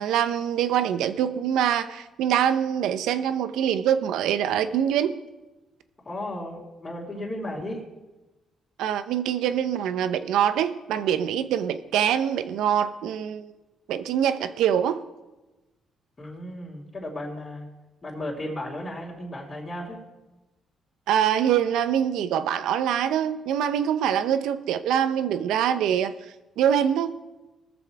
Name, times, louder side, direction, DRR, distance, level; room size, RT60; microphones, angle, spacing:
voice 1, 0.0-5.1 8.8-13.5 13.9-15.0 21.1-26.1 26.6-27.2, right 9 dB, 85° right, 0.7 m, -24 dB
voice 2, 6.0-7.8 16.2-17.7 18.0-20.0, left 1 dB, 30° left, 2.9 m, -34 dB
20.0 x 7.1 x 4.7 m
cardioid pair, 90°, 0 cm